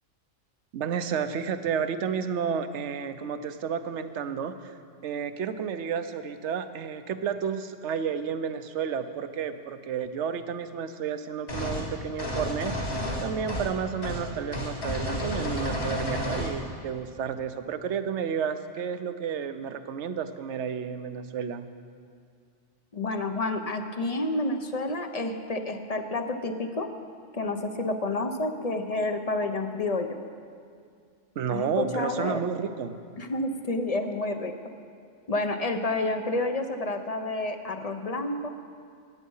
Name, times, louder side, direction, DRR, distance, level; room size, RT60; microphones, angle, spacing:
voice 1, 0.7-4.7 5.0-21.7 31.4-33.0, right 7 dB, 70° right, 10 dB, 1.0 m, -31 dB
sound 1, 11.5-11.8 12.2-13.7 14.0-14.2 14.5-16.6, equal, 55° left, 2.4 m, -31 dB
voice 2, 22.9-26.9 27.3-30.2 31.5-32.4 33.2-34.5 35.3-38.5, left 2 dB, 35° left, 7 dB, 0.7 m, -29 dB
17.5 x 8.4 x 5.5 m, 2.2 s
omnidirectional pair, 1.3 m